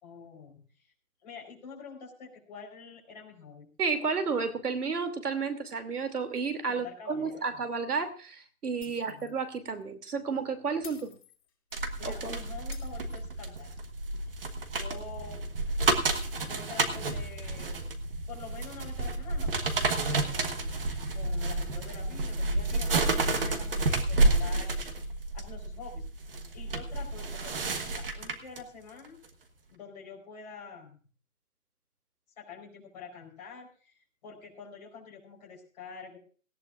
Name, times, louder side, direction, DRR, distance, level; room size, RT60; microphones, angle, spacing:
voice 1, 0.0-0.9 1.2-3.7 6.7-7.6 8.8-9.3 12.0-13.7 14.3-14.4 14.7-15.4 16.4-17.8 18.3-20.7 21.1-26.0 26.5-29.2 29.7-31.0 32.4-36.2, left 5 dB, 25° left, -2 dB, 4.5 m, -47 dB
voice 2, 3.8-11.1 12.0-12.4, right 5 dB, 85° right, 10 dB, 2.8 m, -32 dB
Shatter, 8.8-9.4 9.7-9.8 10.8-11.9 12.7-13.7, left 5 dB, 45° left, 6.5 m, -51 dB
sound 1, 11.7-28.6 29.0-29.3, right 2 dB, 40° right, 1.3 m, -30 dB
18.0 x 17.0 x 2.5 m, 0.40 s
hypercardioid pair, 180°, 45 cm